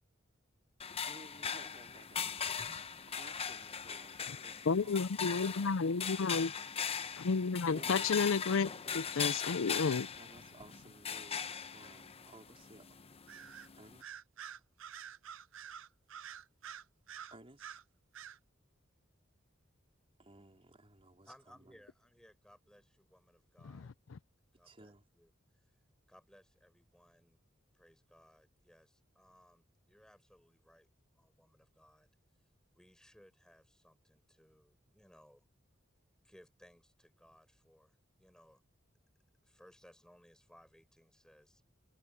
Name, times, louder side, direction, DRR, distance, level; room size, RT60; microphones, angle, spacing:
sound 1, 0.8-14.0, left 7 dB, 30° left, 0.8 m, -40 dB
voice 1, 1.0-5.5 7.7-8.2 10.2-12.9 13.8-14.2 17.3-17.8 20.2-21.8 24.6-25.1, right 2 dB, 30° right, 4.2 m, -58 dB
voice 2, 4.7-6.5 7.2-10.1, left 5 dB, 75° left, 0.5 m, -31 dB
Bird vocalization bird call bird song, 13.3-13.7 14.0-17.8 18.1-18.4, right 8 dB, 70° right, 0.6 m, -48 dB
voice 3, 21.2-23.9 24.5-25.7 26.1-27.4 27.7-30.9 31.1-32.1 32.8-35.5 36.2-38.6 39.4-41.6, equal, 5° left, 6.3 m, -63 dB
head